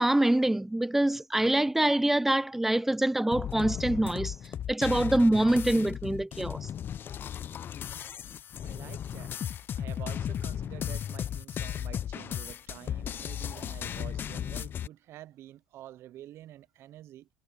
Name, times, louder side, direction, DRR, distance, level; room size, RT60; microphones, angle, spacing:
voice 1, 0.0-4.3 4.7-6.7, right 1 dB, 5° right, 0.3 m, -25 dB
sound 1, 3.3-14.9, left 9 dB, 45° left, 0.7 m, -35 dB
voice 2, 8.6-9.4 9.7-17.3, right 13 dB, 60° right, 0.8 m, -48 dB
supercardioid pair, 75°, 5 cm